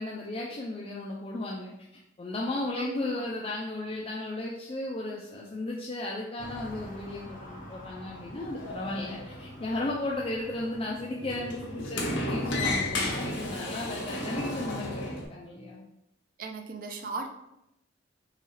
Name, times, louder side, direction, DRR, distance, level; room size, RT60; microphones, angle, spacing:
voice 1, 0.0-1.7 2.2-15.8, left 2 dB, 30° left, -3 dB, 0.4 m, -35 dB
voice 2, 2.7-3.3 16.4-17.3, right 3 dB, 50° right, 4 dB, 0.4 m, -37 dB
sound 1, 6.4-11.2, equal, 45° left, 0.8 m, -47 dB
Sliding door, 8.2-15.3, left 1 dB, 70° left, 0.9 m, -34 dB
5.6 x 2.3 x 3.1 m, 0.87 s
head